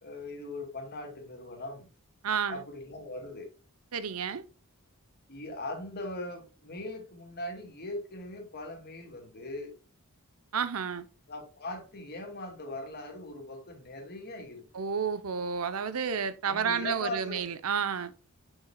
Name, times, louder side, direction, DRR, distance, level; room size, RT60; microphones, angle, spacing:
voice 1, 0.0-1.9 2.5-3.5 5.3-9.7 11.3-14.8 16.4-17.5, left 1 dB, 45° left, 2.4 m, -40 dB
voice 2, 2.2-2.6 3.9-4.4 10.5-11.1 14.7-18.1, right 6 dB, 80° right, 0.7 m, -31 dB
7.5 x 6.4 x 2.2 m
head